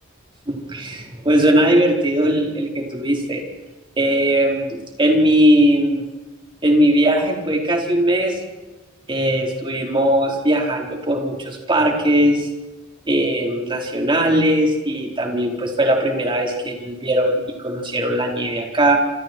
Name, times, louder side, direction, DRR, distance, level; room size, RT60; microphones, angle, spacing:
voice 1, 0.5-3.4 4.0-6.0 6.6-8.4 9.1-12.5 13.1-19.0, right 1 dB, 25° right, 1 dB, 4.5 m, -19 dB
27.5 x 27.5 x 4.7 m, 1.2 s
head